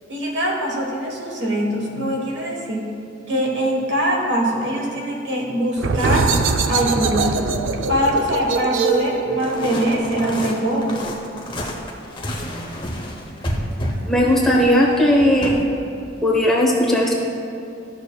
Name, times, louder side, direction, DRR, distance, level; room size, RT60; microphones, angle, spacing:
voice 1, 0.1-3.0 3.3-6.3 6.7-7.5 7.9-11.1, equal, 65° right, 0 dB, 1.3 m, -22 dB
sound 1, 5.8-11.2, right 4 dB, 80° right, 0.4 m, -23 dB
sound 2, 9.4-15.6, equal, 25° left, 0.8 m, -30 dB
voice 2, 14.1-15.6 16.2-17.1, left 1 dB, ahead, -4 dB, 0.9 m, -17 dB
12.5 x 6.4 x 2.3 m, 2.8 s
head